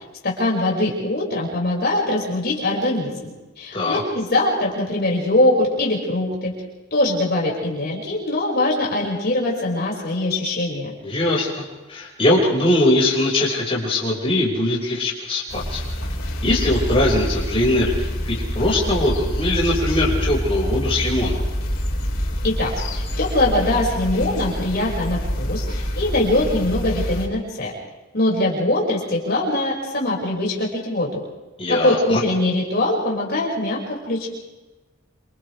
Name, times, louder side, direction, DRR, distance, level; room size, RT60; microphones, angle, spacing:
voice 1, 0.2-3.1 3.6-6.5 6.9-10.9 22.4-25.6 25.9-27.7 28.1-31.1 31.7-34.3, left 1 dB, 50° left, -3 dB, 6.1 m, -22 dB
voice 2, 11.0-11.6 11.9-15.8 16.4-21.4 31.6-32.2, left 1 dB, 30° left, -5 dB, 5.9 m, -21 dB
sound 1, 15.5-27.3, equal, 75° left, 5.2 m, -26 dB
29.0 x 28.0 x 3.5 m, 1.1 s
head